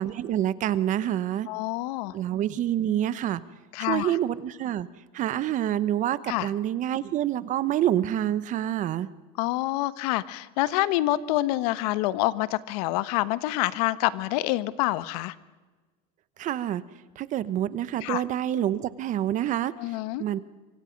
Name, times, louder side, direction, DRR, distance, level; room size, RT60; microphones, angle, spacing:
voice 1, 0.0-1.5 2.1-3.4 3.8-4.9 5.1-9.1 16.4-16.8 17.2-20.4, right 11 dB, 40° right, 16 dB, 1.0 m, -27 dB
voice 2, 1.5-2.1 3.7-4.1 6.3-6.5 9.4-15.3 18.0-18.2 19.8-20.2, left 17 dB, 75° left, 16 dB, 1.1 m, -27 dB
26.0 x 25.0 x 5.3 m, 1.3 s
supercardioid pair, 140°, 20 cm